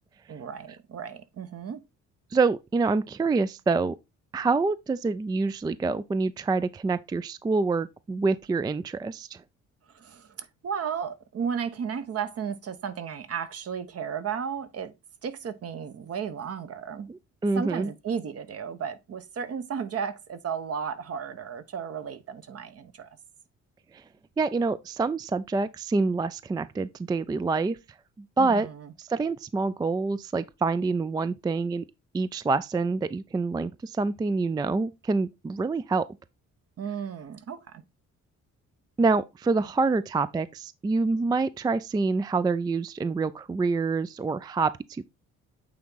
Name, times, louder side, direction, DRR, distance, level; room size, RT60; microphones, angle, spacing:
voice 1, 0.3-1.8 9.9-14.9 15.2-17.1 17.5-23.1 28.4-28.9 36.8-37.8, right 7 dB, 50° right, 1.0 m, -34 dB
voice 2, 2.3-4.0 4.3-9.4 17.1-17.9 23.9-24.0 24.4-27.8 28.4-28.7 29.0-31.8 32.1-36.1 39.0-45.1, right 3 dB, 15° right, 0.3 m, -26 dB
8.6 x 3.6 x 3.9 m
cardioid pair, 90°, 30 cm